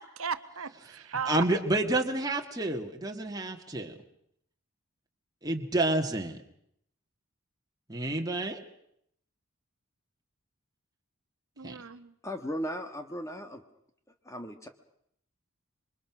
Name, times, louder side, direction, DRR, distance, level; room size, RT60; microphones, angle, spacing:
voice 1, 0.0-1.4 11.6-12.1, right 6 dB, 75° right, 11 dB, 1.2 m, -36 dB
voice 2, 1.3-3.9 5.4-6.4 7.9-8.6 11.6-11.8, right 2 dB, 15° right, 2 dB, 2.0 m, -29 dB
voice 3, 12.2-13.6 14.2-14.7, equal, 15° left, 6 dB, 1.4 m, -36 dB
27.5 x 24.5 x 6.1 m, 0.73 s
head